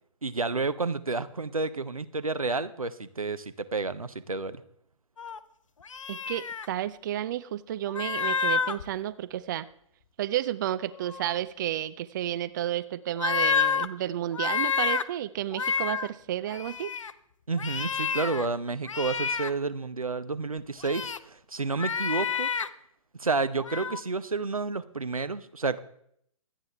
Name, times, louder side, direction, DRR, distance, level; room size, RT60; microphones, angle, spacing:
voice 1, 0.2-4.6 17.5-22.5 23.1-25.8, right 3 dB, 85° right, 12 dB, 0.8 m, -30 dB
sound 1, 5.2-5.4 5.9-6.7 7.9-8.8 11.0-11.4 13.2-13.9 14.3-15.0 15.5-16.1 16.5-17.1 17.6-18.5 18.9-19.5 20.8-21.2 21.7-22.7 23.6-24.0, left 6 dB, 65° left, 0.7 m, -29 dB
voice 2, 6.1-9.7 10.2-16.9, right 12 dB, 35° right, 15 dB, 0.4 m, -31 dB
24.5 x 9.1 x 3.4 m, 0.69 s
figure-of-eight pair, 125°, 18 cm